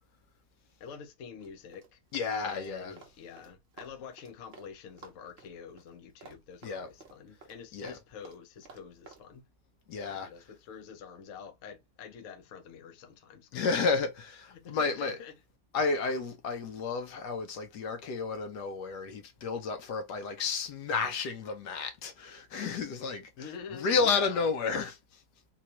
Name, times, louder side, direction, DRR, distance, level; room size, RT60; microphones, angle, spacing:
voice 1, 0.8-2.0 2.4-9.4 10.1-13.6 14.5-15.3 23.4-24.5, left 6 dB, 55° left, 1.0 m, -46 dB
Run, 1.4-4.7 5.0-9.2, right 4 dB, 45° right, 0.9 m, -53 dB
voice 2, 2.1-3.0 6.6-6.9 7.7-8.0 9.9-10.3 13.5-15.2 15.7-25.2, left 4 dB, 70° left, 1.3 m, -32 dB
4.1 x 2.3 x 2.9 m
omnidirectional pair, 1.9 m